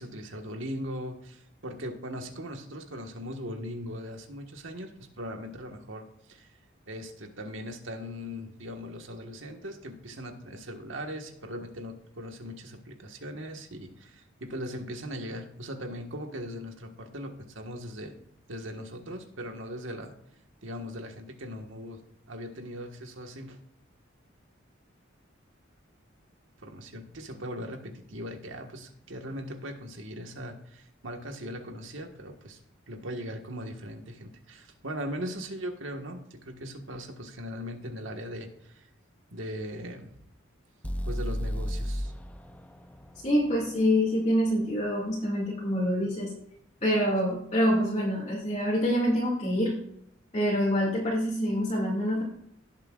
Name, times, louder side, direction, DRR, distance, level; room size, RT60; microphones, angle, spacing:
voice 1, 0.0-6.5 6.9-18.1 18.5-20.1 20.6-22.0 22.3-23.6 26.6-32.6 32.9-38.9 39.3-40.2 41.0-42.1, equal, 70° right, 4 dB, 1.6 m, -39 dB
sound 1, 40.8-44.8, equal, 5° left, 0.6 m, -35 dB
voice 2, 43.2-46.3 46.8-49.8 50.3-52.2, equal, 35° left, -5 dB, 2.3 m, -26 dB
18.0 x 7.5 x 2.5 m, 0.73 s
head